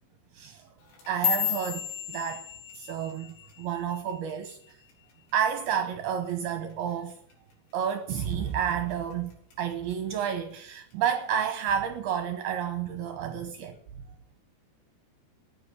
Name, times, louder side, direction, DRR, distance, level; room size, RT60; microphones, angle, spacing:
voice 1, 0.3-0.7 1.1-2.5 2.7-4.8 5.3-7.2 7.7-9.3 9.6-13.8, right 8 dB, 75° right, 2.7 m, -30 dB
sound 1, 0.8-5.2 5.5-5.9 6.3-6.7 7.1-7.3 7.9-8.3 8.7-9.5 9.9-10.3 11.1-11.2, left 11 dB, 80° left, 6.0 m, -34 dB
14.5 x 10.0 x 8.4 m
omnidirectional pair, 5.0 m